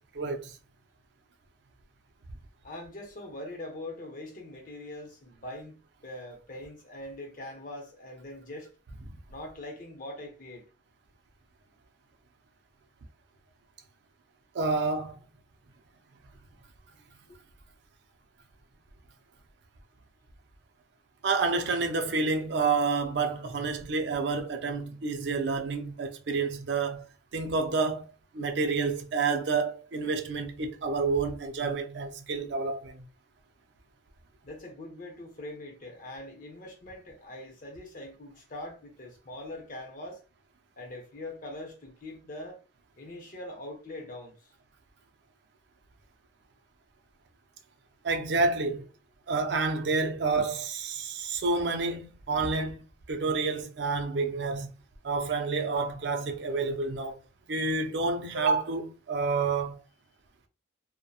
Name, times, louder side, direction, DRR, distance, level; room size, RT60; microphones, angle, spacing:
voice 1, 0.1-0.5 14.5-15.2 21.2-27.0 27.3-28.0 28.3-33.0 48.0-48.8 49.3-52.8 53.1-54.7 55.0-57.2 57.5-59.8, right 4 dB, 65° right, 0.4 m, -29 dB
voice 2, 2.6-8.7 9.3-10.6 34.4-40.2 40.8-42.6 43.0-44.5, left 1 dB, 45° left, 0.8 m, -42 dB
2.7 x 2.1 x 2.3 m
head